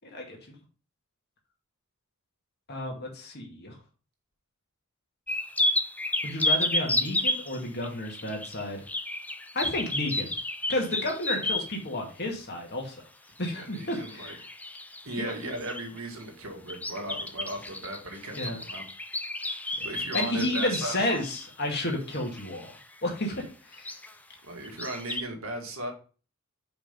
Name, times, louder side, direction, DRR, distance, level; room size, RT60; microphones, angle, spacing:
voice 1, 0.0-0.4 2.7-3.7 6.2-8.8 9.5-10.3 10.7-13.0 13.4-14.4 15.2-15.3 18.3-18.6 19.8-19.9 20.1-22.7 23.0-24.0, left 1 dB, 50° left, 1 dB, 1.9 m, -31 dB
sound 1, 5.3-11.8 13.4-16.0 16.7-22.8 23.2-23.4 23.7-24.1 24.6-25.2, left 1 dB, 5° left, 0.5 m, -32 dB
voice 2, 13.5-14.4 15.0-18.8 19.8-21.2 23.3-23.5 24.4-25.9, right 1 dB, 70° right, 2 dB, 1.9 m, -37 dB
5.4 x 5.1 x 5.1 m, 0.37 s
head